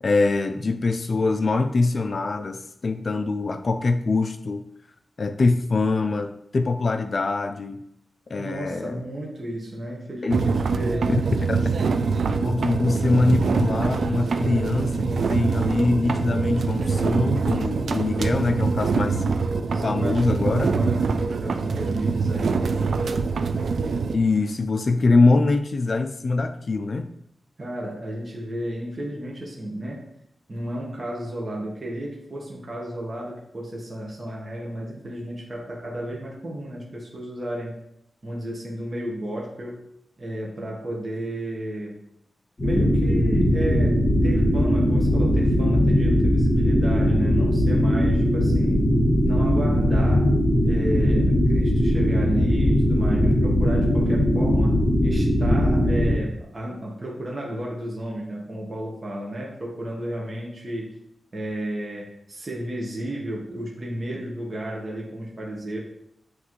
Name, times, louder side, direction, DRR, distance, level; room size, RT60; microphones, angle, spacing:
voice 1, 0.0-4.6 5.2-7.8 8.3-9.0 10.2-10.4 11.1-11.2 11.5-11.6 12.4-19.2 19.8-20.7 24.1-27.1, left 3 dB, 45° left, 8 dB, 0.4 m, -23 dB
voice 2, 8.4-11.1 19.2-19.4 19.7-22.8 27.6-30.1 30.5-37.8 38.2-39.8 40.2-42.0 42.6-48.8 49.3-50.3 50.6-60.9 61.3-65.8, right 1 dB, 35° right, -3 dB, 1.3 m, -33 dB
sound 1, 10.3-24.2, right 4 dB, 75° right, 0.4 m, -24 dB
sound 2, 42.6-56.1, equal, 25° left, 1.9 m, -20 dB
9.6 x 3.3 x 3.1 m, 0.75 s
wide cardioid pair, 120°, 0 cm